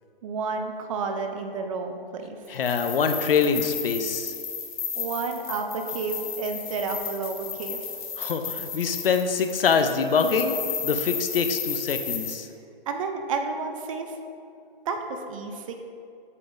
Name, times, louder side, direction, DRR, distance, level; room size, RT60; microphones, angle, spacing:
voice 1, 0.2-2.4 5.0-7.9 12.9-14.1 14.9-15.7, right 4 dB, 35° right, 5 dB, 0.6 m, -31 dB
voice 2, 2.5-4.3 8.2-12.5, left 5 dB, 70° left, 7 dB, 0.7 m, -24 dB
sound 1, 2.5-12.4, left 6 dB, 55° left, 1.2 m, -34 dB
8.4 x 6.9 x 2.7 m, 2.4 s
hypercardioid pair, 140°, 29 cm